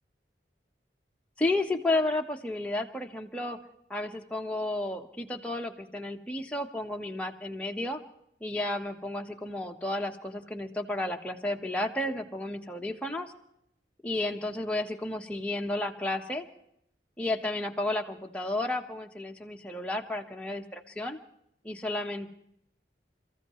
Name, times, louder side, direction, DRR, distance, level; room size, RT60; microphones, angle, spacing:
voice 1, 1.4-3.6 3.9-8.0 8.4-13.3 14.0-16.5 17.2-21.2 21.6-22.3, left 2 dB, 5° left, 2 dB, 1.2 m, -32 dB
29.5 x 15.0 x 3.1 m, 0.74 s
head